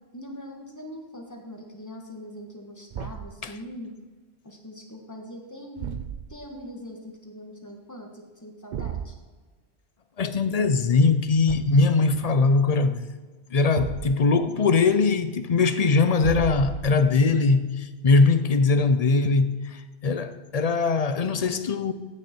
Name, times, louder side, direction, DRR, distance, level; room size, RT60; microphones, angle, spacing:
voice 1, 0.1-3.9 4.4-6.0 6.3-9.2, equal, 15° left, 1.6 m, -42 dB
Thump thud, 2.9-3.4 5.8-6.5 8.7-9.2 11.5-11.9 13.8-14.4 16.2-17.2, right 9 dB, 60° right, 0.6 m, -34 dB
voice 2, 10.2-13.1 13.5-19.6 20.0-21.9, left 4 dB, 40° left, 0.7 m, -21 dB
15.5 x 6.6 x 4.5 m
omnidirectional pair, 1.1 m